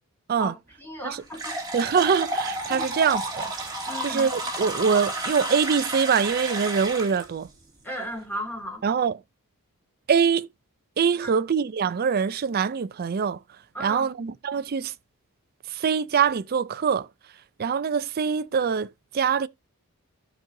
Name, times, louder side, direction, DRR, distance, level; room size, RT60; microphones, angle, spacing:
voice 1, 0.8-1.6 2.7-2.9 3.9-4.3 7.8-8.8 11.2-11.4 13.7-14.1, equal, 10° left, 2.6 m, -35 dB
sound 1, 1.3-7.2, right 1 dB, 20° right, 2.6 m, -31 dB
voice 2, 1.7-3.5 4.0-7.5 8.8-9.2 10.1-10.5 11.0-13.4 13.8-14.9 15.7-17.1 17.6-19.5, right 6 dB, 45° right, 0.4 m, -24 dB
15.0 x 5.3 x 2.7 m
head